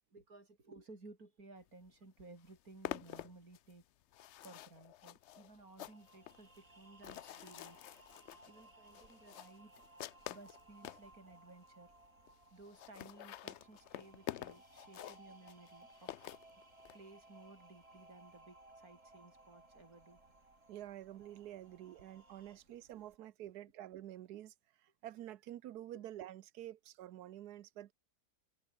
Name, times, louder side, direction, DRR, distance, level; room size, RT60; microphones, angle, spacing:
voice 1, 0.1-3.8 4.4-9.7 10.3-11.9 12.5-16.4 16.9-20.2 22.7-22.8 25.9-26.0, right 2 dB, 70° right, 5.5 m, -58 dB
sound 1, 1.9-2.0 2.2-11.1 11.7-11.8 12.0-12.1 12.3-12.4 12.6-17.0, left 12 dB, 65° left, 0.7 m, -48 dB
sound 2, 5.3-22.6, right 2 dB, 20° right, 3.2 m, -62 dB
sound 3, 6.1-23.2, right 3 dB, 55° right, 3.5 m, -74 dB
voice 2, 20.7-27.9, right 12 dB, 90° right, 1.3 m, -49 dB
omnidirectional pair, 1.6 m